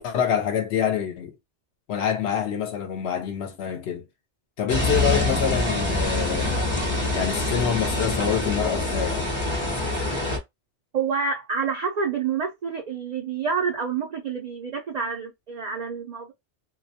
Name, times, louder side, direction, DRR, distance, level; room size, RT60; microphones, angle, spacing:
voice 1, 0.0-1.3 1.9-4.1 4.6-6.7 7.1-9.3, left 8 dB, 70° left, 0.8 m, -26 dB
sound 1, 4.7-10.4, left 2 dB, 30° left, 0.7 m, -25 dB
voice 2, 10.9-16.3, right 5 dB, 55° right, 0.4 m, -28 dB
2.2 x 2.1 x 2.7 m
omnidirectional pair, 1.2 m